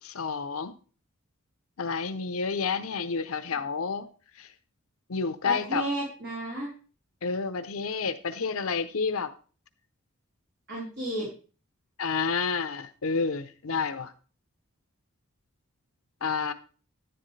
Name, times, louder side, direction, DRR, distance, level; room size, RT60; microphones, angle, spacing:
voice 1, 0.0-0.7 1.8-4.1 4.4-4.5 5.1-5.8 7.2-9.3 12.0-14.1 16.2-16.5, left 5 dB, 80° left, 10 dB, 0.8 m, -29 dB
voice 2, 5.4-6.7 10.7-11.3, right 1 dB, 55° right, -6 dB, 4.5 m, -32 dB
10.5 x 10.0 x 3.3 m, 0.38 s
head